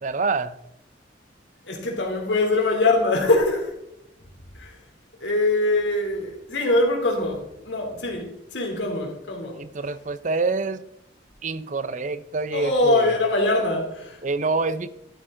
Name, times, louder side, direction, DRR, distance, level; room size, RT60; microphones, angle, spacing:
voice 1, 0.0-0.6 9.5-10.8 11.4-13.1 14.2-14.9, right 3 dB, 45° right, 0.6 m, -26 dB
voice 2, 1.6-3.7 4.5-4.8 5.2-9.6 12.5-14.2, left 2 dB, 85° left, 3.2 m, -23 dB
13.0 x 8.1 x 3.8 m
head